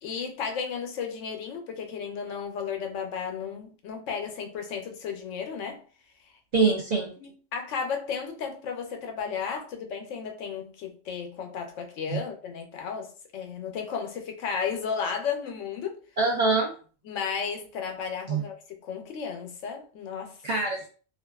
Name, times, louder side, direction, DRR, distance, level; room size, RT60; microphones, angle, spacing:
voice 1, 0.0-5.8 6.6-6.7 7.2-16.0 17.0-18.6 18.8-20.4, left 6 dB, 80° left, 0.9 m, -34 dB
voice 2, 6.5-7.1 12.1-12.2 16.2-16.7 18.3-18.4 20.4-20.9, right 4 dB, 55° right, 0.5 m, -24 dB
2.5 x 2.3 x 2.2 m
omnidirectional pair, 1.3 m